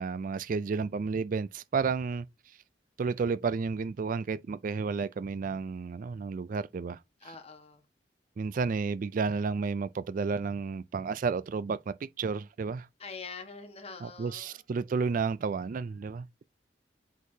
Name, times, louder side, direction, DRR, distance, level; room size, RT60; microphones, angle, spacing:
voice 1, 0.0-2.3 3.0-7.0 8.4-12.9 14.0-16.3, right 5 dB, 50° right, 0.3 m, -31 dB
voice 2, 7.2-7.9 13.0-14.6, left 5 dB, 35° left, 1.3 m, -44 dB
8.1 x 4.6 x 2.7 m
head